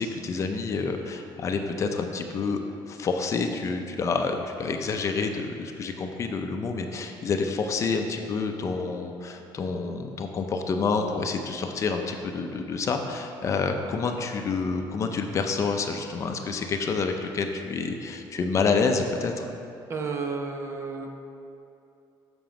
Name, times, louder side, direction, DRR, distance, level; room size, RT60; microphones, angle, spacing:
voice 1, 0.0-2.6 2.9-19.5, left 4 dB, 35° left, 4 dB, 0.6 m, -28 dB
voice 2, 19.9-21.1, right 4 dB, 30° right, 3 dB, 0.8 m, -32 dB
7.5 x 6.0 x 5.1 m, 2.7 s
cardioid pair, 145°, 8 cm